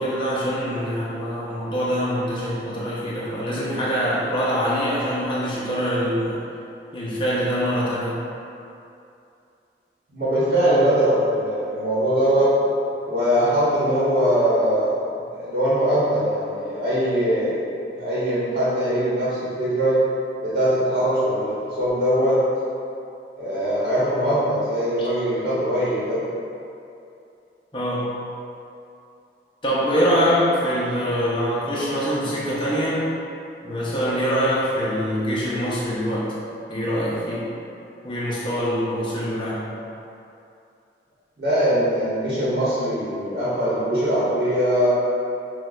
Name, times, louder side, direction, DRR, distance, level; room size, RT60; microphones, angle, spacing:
voice 1, 0.0-6.4 6.9-8.2 17.9-18.0 25.0-25.1 27.7-28.2 29.6-33.1 33.6-36.3 36.7-37.5 38.0-39.7, equal, 30° left, -7 dB, 0.7 m, -24 dB
voice 2, 10.1-12.6 13.1-15.0 15.3-17.6 18.0-20.1 20.4-22.4 23.4-26.2 41.4-44.9, equal, 60° right, -11 dB, 1.0 m, -21 dB
6.0 x 2.3 x 2.5 m, 2.6 s
head